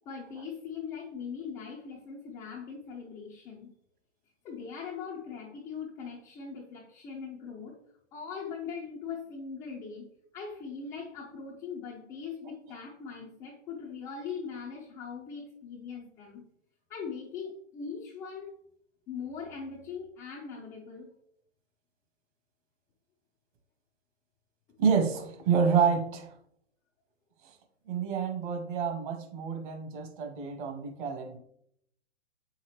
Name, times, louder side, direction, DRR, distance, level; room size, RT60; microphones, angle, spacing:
voice 1, 0.1-3.7 4.4-7.8 8.1-10.1 10.3-16.4 16.9-18.5 19.1-21.1, left 6 dB, 10° left, -3 dB, 0.4 m, -40 dB
voice 2, 24.8-26.3 27.9-31.4, right 6 dB, 45° right, 5 dB, 1.4 m, -28 dB
7.6 x 5.6 x 3.2 m, 0.71 s
hypercardioid pair, 125°, 36 cm